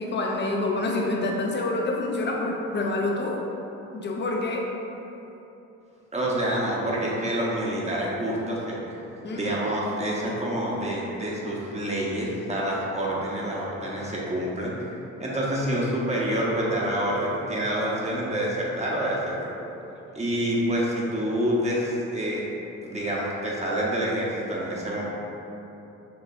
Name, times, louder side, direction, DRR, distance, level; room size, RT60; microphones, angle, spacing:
voice 1, 0.0-3.4 3.9-4.7 9.2-9.6, left 2 dB, 35° left, 0 dB, 0.7 m, -27 dB
voice 2, 6.1-8.8 9.3-14.7 15.2-19.5 20.1-22.5 22.8-25.0, right 1 dB, 20° right, -5 dB, 1.1 m, -27 dB
6.7 x 2.9 x 2.6 m, 3.0 s
cardioid pair, 90°, 30 cm